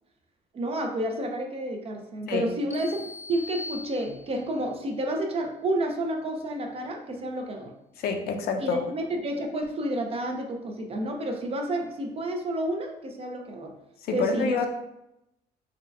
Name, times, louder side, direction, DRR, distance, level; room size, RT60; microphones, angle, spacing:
voice 1, 0.5-7.7 8.6-13.7 14.1-14.6, right 1 dB, 35° right, 3 dB, 0.6 m, -30 dB
sound 1, 2.7-4.6, left 2 dB, 15° left, 0.5 m, -41 dB
voice 2, 8.0-8.8 14.0-14.7, left 5 dB, 65° left, 5 dB, 0.5 m, -27 dB
3.7 x 2.3 x 3.4 m, 0.86 s
cardioid pair, 110°, 17 cm